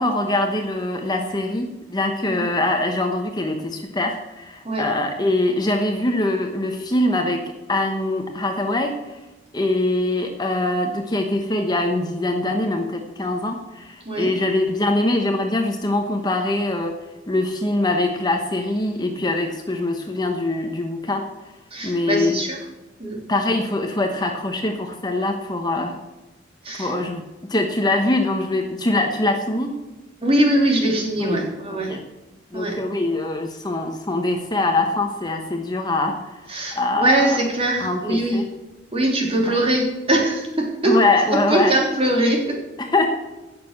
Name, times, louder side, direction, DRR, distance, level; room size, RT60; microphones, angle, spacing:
voice 1, 0.0-7.4 7.7-8.9 9.5-16.9 17.3-21.2 21.8-22.3 23.3-26.0 26.8-27.2 27.5-29.7 31.2-31.4 31.7-32.0 32.5-36.2 36.7-37.4 37.8-38.4 39.4-39.6 40.8-41.7 42.8-43.1, left 2 dB, 20° left, 4 dB, 1.1 m, -23 dB
voice 2, 21.7-22.6 23.0-23.2 26.6-26.9 30.2-31.9 32.5-32.8 36.5-38.4 38.9-41.0 41.5-42.6, right 1 dB, 30° right, 0 dB, 3.1 m, -21 dB
17.0 x 6.7 x 6.6 m, 1.1 s
head